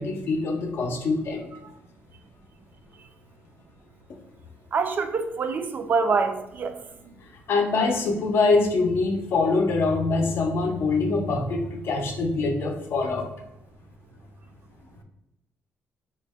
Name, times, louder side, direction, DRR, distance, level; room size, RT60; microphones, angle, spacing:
voice 1, 0.0-1.5 7.5-13.3, left 3 dB, 55° left, 4 dB, 0.5 m, -24 dB
voice 2, 4.7-6.8 7.0-7.1, right 4 dB, 40° right, 7 dB, 0.4 m, -25 dB
3.8 x 2.1 x 3.4 m, 0.89 s
cardioid pair, 135°, 5 cm